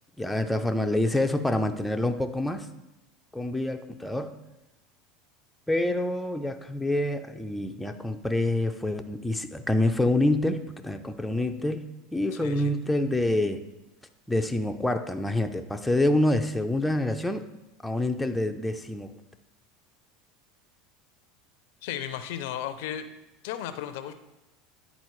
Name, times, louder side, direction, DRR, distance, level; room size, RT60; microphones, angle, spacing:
voice 1, 0.2-2.7 3.3-4.3 5.7-11.8 12.1-13.6 14.3-17.4 17.8-19.1, left 1 dB, 5° left, 6 dB, 0.5 m, -27 dB
voice 2, 21.8-23.1 23.4-24.1, left 10 dB, 75° left, 10 dB, 0.5 m, -34 dB
9.4 x 4.0 x 3.1 m, 0.94 s
hypercardioid pair, 100°, 0 cm